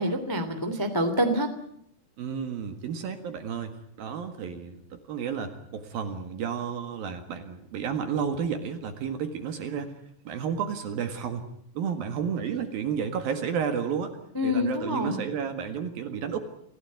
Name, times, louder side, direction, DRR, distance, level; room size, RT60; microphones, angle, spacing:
voice 1, 0.0-1.5 14.3-15.2, equal, 15° left, 7 dB, 0.7 m, -26 dB
voice 2, 2.2-9.9 10.2-11.4 11.7-14.2 14.4-16.4, right 7 dB, 60° right, 8 dB, 2.9 m, -32 dB
28.0 x 16.0 x 9.5 m, 0.72 s
omnidirectional pair, 5.8 m